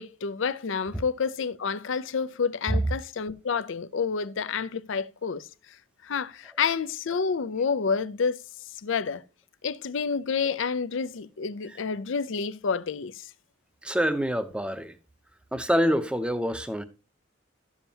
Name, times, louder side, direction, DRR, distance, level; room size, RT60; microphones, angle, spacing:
voice 1, 0.0-5.4 6.0-8.4 8.8-9.2 9.6-13.1, left 5 dB, 65° left, 0.5 m, -29 dB
voice 2, 13.8-15.0 15.5-16.8, equal, 5° right, 0.7 m, -26 dB
12.5 x 7.2 x 2.8 m
head